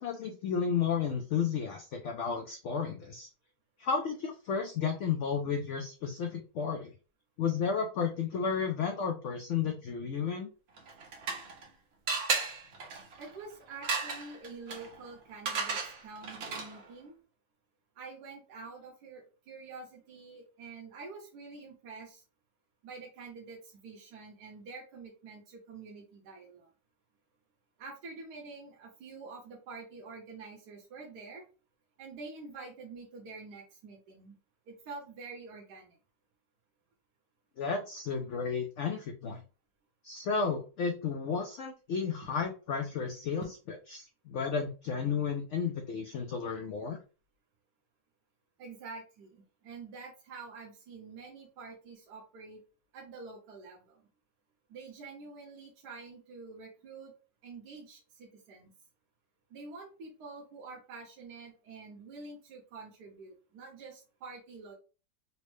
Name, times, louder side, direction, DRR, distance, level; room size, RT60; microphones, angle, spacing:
voice 1, 0.0-3.3 3.8-6.9 7.4-10.5 37.6-39.4 40.0-43.5 43.9-47.0, left 6 dB, 75° left, 4 dB, 0.6 m, -32 dB
sound 1, 10.8-11.7 12.1-16.9, right 4 dB, 60° right, 0.7 m, -35 dB
voice 2, 13.2-17.2 17.9-22.2 22.8-26.7 27.8-31.4 32.0-34.4 34.7-36.0 43.4-43.5 48.6-52.6 52.9-54.1 54.7-57.1 57.4-58.7 59.5-64.7, right 4 dB, 75° right, -1 dB, 1.4 m, -47 dB
4.2 x 2.0 x 3.1 m, 0.34 s
omnidirectional pair, 1.8 m